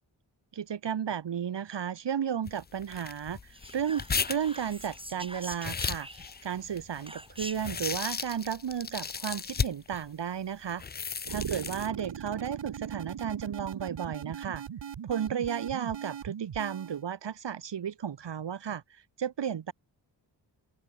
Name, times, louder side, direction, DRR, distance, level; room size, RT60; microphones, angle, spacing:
voice 1, 0.5-6.1 6.4-10.8 11.3-14.6 15.1-19.7, right 8 dB, 70° right, 1.7 m, -33 dB
sound 1, 2.5-10.0 10.7-11.9, left 5 dB, 25° left, 0.5 m, -35 dB
Whispering, 3.5-6.5 7.1-7.8, right 1 dB, 10° right, 8.0 m, -45 dB
sound 2, 11.2-17.0, right 8 dB, 85° right, 4.6 m, -40 dB
open air
cardioid pair, 55°, 44 cm